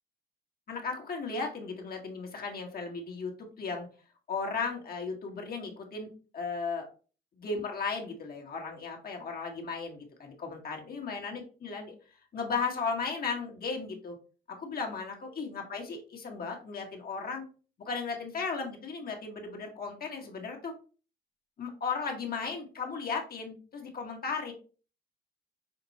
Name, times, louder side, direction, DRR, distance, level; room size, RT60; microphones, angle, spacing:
voice 1, 0.7-3.3 3.6-3.9 4.3-6.9 7.4-11.9 12.3-14.2 14.5-17.4 17.8-20.7 21.6-24.5, left 4 dB, 50° left, 1 dB, 1.4 m, -35 dB
5.8 x 2.3 x 4.1 m, 0.37 s
cardioid pair, 90°, 20 cm